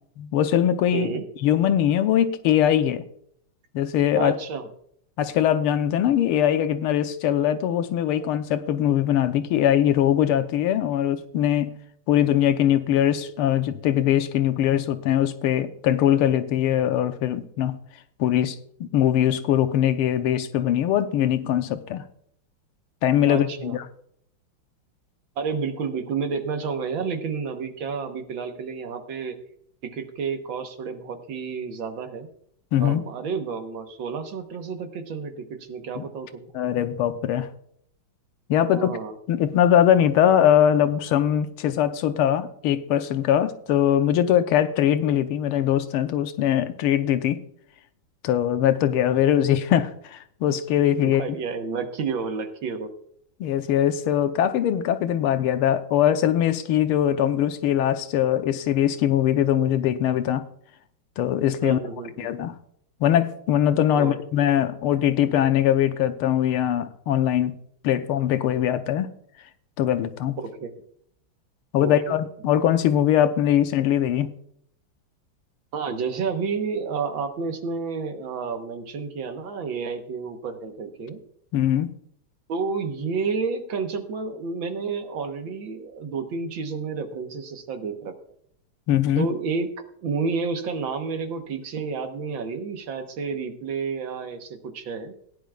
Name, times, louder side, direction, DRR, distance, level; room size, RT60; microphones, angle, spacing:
voice 1, 0.2-1.1 1.4-3.0 3.7-4.4 5.2-11.7 12.1-17.8 18.2-22.0 23.0-23.8 32.7-33.0 36.0-36.1 36.5-37.5 38.5-39.0 39.3-47.4 48.2-51.2 53.4-60.5 61.2-61.8 62.2-62.5 63.0-67.5 67.8-69.1 69.8-70.4 71.7-74.3 81.5-81.9 88.9-89.3, left 10 dB, 85° left, 1.7 m, -21 dB
voice 2, 0.9-1.3 4.2-4.7 8.2-8.3 23.3-23.8 25.4-29.4 29.8-32.3 32.8-36.5 38.6-39.1 51.0-52.9 61.6-62.3 64.0-64.2 70.4-70.7 71.8-72.2 75.7-81.2 82.5-88.1 89.2-89.7 90.0-95.1, right 5 dB, 65° right, 1.8 m, -30 dB
17.0 x 10.5 x 2.4 m
omnidirectional pair, 2.4 m